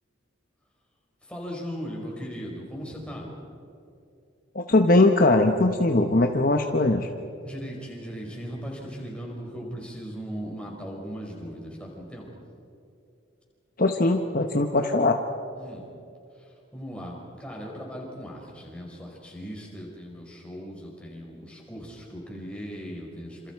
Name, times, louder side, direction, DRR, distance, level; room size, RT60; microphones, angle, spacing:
voice 1, 1.2-3.3 7.4-12.3 15.5-15.9 16.3-23.5, equal, 5° left, -2 dB, 5.0 m, -38 dB
voice 2, 4.5-7.1 13.8-15.2, left 2 dB, 45° left, 4 dB, 1.0 m, -20 dB
28.0 x 27.0 x 4.7 m, 2.6 s
head